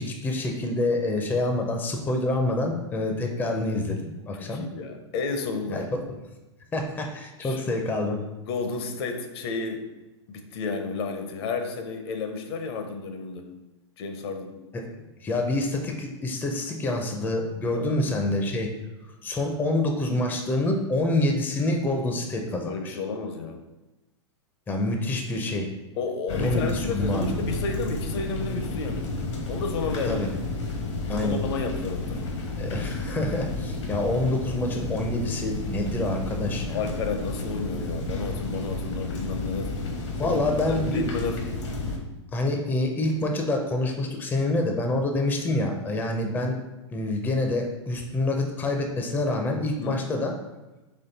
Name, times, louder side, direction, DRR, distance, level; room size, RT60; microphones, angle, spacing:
voice 1, 0.0-4.6 5.7-6.0 6.7-8.2 14.7-14.8 15.2-18.7 19.2-23.0 24.7-25.7 26.3-27.5 30.1-30.3 31.1-31.4 32.6-36.8 40.2-41.1 42.3-46.6 46.9-50.3, left 2 dB, 10° left, 3 dB, 0.5 m, -27 dB
voice 2, 4.3-6.0 7.4-7.6 8.4-9.9 10.3-13.5 14.0-14.6 17.7-18.0 22.6-23.6 26.0-29.1 29.5-30.3 31.1-32.3 36.7-39.7 40.2-40.4 40.7-41.4 49.8-50.0, left 4 dB, 60° left, 6 dB, 0.7 m, -32 dB
sound 1, 26.3-42.0, left 2 dB, 75° left, 1.1 m, -31 dB
4.3 x 3.1 x 4.0 m, 1.1 s
hypercardioid pair, 125°, 15 cm